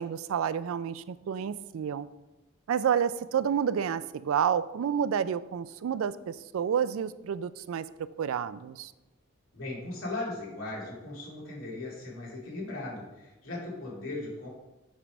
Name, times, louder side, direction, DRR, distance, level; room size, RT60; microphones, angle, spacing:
voice 1, 0.0-2.1 2.7-8.9, right 8 dB, 80° right, 16 dB, 0.3 m, -30 dB
voice 2, 9.5-14.5, left 2 dB, 80° left, -5 dB, 2.3 m, -38 dB
7.4 x 3.3 x 5.8 m, 1.0 s
head